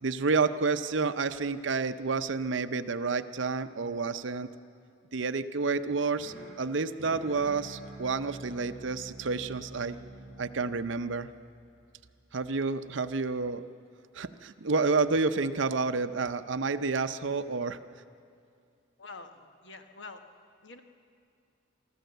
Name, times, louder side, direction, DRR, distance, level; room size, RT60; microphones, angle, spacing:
voice 1, 0.0-4.5 5.1-10.0 10.4-11.3 12.3-13.6 14.1-17.8, right 4 dB, 65° right, 10 dB, 0.7 m, -29 dB
sound 1, 5.8-11.9, right 2 dB, 30° right, 5.8 m, -47 dB
voice 2, 19.0-20.2 20.6-20.8, left 3 dB, 65° left, 7 dB, 1.2 m, -46 dB
24.0 x 14.0 x 7.9 m, 2.4 s
head